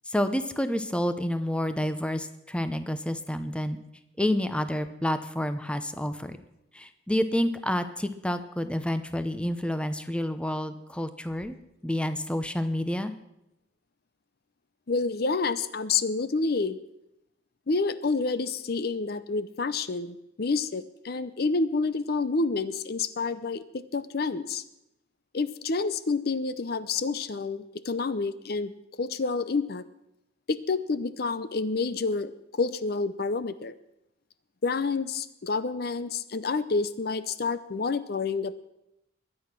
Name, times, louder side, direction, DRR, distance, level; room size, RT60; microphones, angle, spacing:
voice 1, 0.1-3.8 4.2-6.4 6.7-11.5 11.8-13.1, left 1 dB, 5° left, 10 dB, 0.7 m, -29 dB
voice 2, 14.9-16.8 17.7-24.6 25.3-28.7 29.0-29.9 30.5-33.7 34.6-38.5, left 4 dB, 55° left, 14 dB, 0.6 m, -28 dB
22.0 x 8.7 x 6.0 m, 0.86 s
head